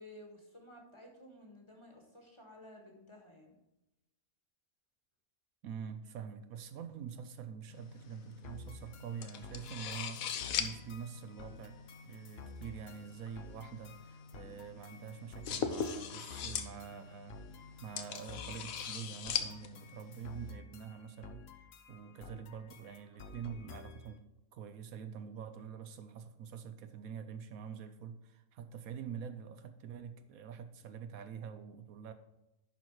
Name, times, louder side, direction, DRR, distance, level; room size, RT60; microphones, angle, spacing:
voice 1, 0.0-3.6, left 1 dB, 20° left, 1.5 m, -54 dB
voice 2, 5.6-10.3 10.6-11.8 12.0-17.4 17.8-21.4 21.9-24.2 24.5-32.1, right 7 dB, 75° right, 1.1 m, -46 dB
sound 1, 7.7-20.5, left 7 dB, 75° left, 1.2 m, -42 dB
sound 2, 8.4-24.2, left 4 dB, 55° left, 0.8 m, -53 dB
11.0 x 4.4 x 4.6 m
omnidirectional pair, 1.5 m